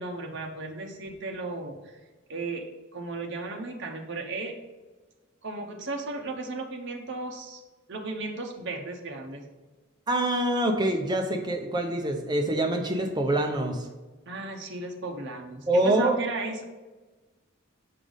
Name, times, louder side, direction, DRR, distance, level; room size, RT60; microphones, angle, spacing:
voice 1, 0.0-2.0 2.3-4.6 5.4-7.6 7.9-9.5 14.3-16.6, right 3 dB, 55° right, 1 dB, 0.8 m, -35 dB
voice 2, 10.1-13.9 15.7-16.2, right 1 dB, 20° right, 3 dB, 0.6 m, -25 dB
6.6 x 5.1 x 3.9 m, 1.2 s
head